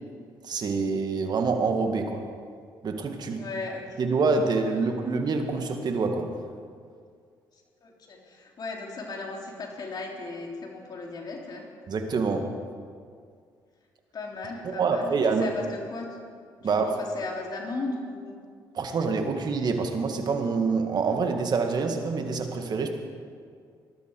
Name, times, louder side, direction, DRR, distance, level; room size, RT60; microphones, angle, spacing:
voice 1, 0.4-2.2 2.8-3.4 4.0-6.3 11.9-12.5 14.8-15.5 16.6-17.0 18.7-22.9, right 4 dB, 55° right, 5 dB, 2.0 m, -26 dB
voice 2, 3.3-4.0 7.5-11.7 14.1-16.2 16.6-18.4, left 3 dB, 50° left, 0 dB, 3.4 m, -36 dB
20.0 x 12.5 x 4.8 m, 2.1 s
supercardioid pair, 60°, 9 cm